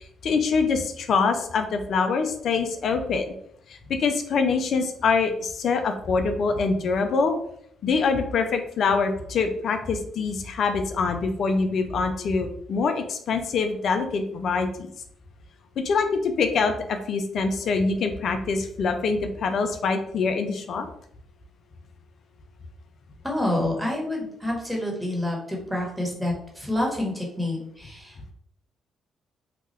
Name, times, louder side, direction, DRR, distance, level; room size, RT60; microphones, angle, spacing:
voice 1, 0.0-3.3 3.7-7.4 7.8-14.9 15.8-20.9, left 4 dB, 60° left, 6 dB, 0.4 m, -24 dB
voice 2, 23.2-28.3, left 1 dB, 5° right, -2 dB, 1.1 m, -28 dB
2.8 x 2.2 x 3.1 m, 0.70 s
hypercardioid pair, 50°, 0 cm